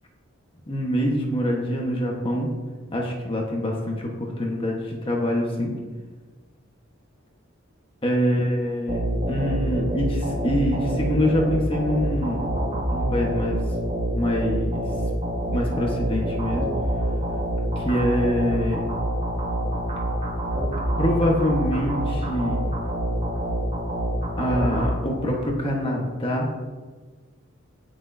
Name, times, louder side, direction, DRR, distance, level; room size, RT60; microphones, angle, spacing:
voice 1, 0.7-2.5 2.9-5.7 8.0-12.4 12.9-13.6 14.1-14.8 15.5-16.6 17.8-18.8 21.0-22.6 24.4-26.5, equal, 25° left, -1 dB, 1.3 m, -25 dB
sound 1, 8.9-25.5, right 1 dB, 35° right, 1.5 m, -26 dB
17.5 x 6.3 x 2.8 m, 1.4 s
head